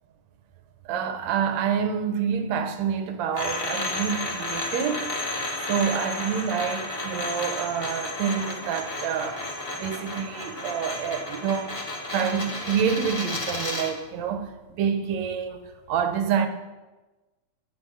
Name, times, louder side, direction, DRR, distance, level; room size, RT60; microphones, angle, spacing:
voice 1, 0.9-5.1 5.7-9.4 9.7-11.7 12.1-16.5, right 7 dB, 70° right, 2.1 m, -27 dB
sound 1, 3.3-14.0, left 2 dB, 30° left, 1.1 m, -32 dB
10.0 x 10.0 x 6.3 m
omnidirectional pair, 3.4 m